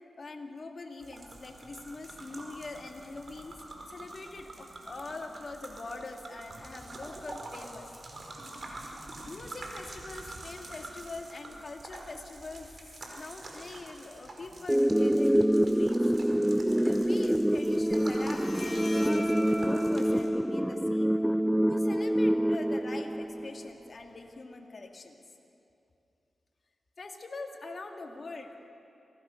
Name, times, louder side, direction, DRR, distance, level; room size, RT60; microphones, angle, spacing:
voice 1, 0.2-7.9 9.3-12.7 13.1-16.0 16.8-21.2 21.7-25.2 27.0-28.7, left 3 dB, 55° left, 3 dB, 2.7 m, -43 dB
sound 1, 1.0-20.3, right 2 dB, 55° right, 4.7 m, -46 dB
sound 2, 14.7-23.7, equal, 5° right, 0.4 m, -26 dB
Bowed string instrument, 17.4-24.4, left 1 dB, 35° left, 4.3 m, -44 dB
26.0 x 19.0 x 6.7 m, 2.7 s
cardioid pair, 50°, 0 cm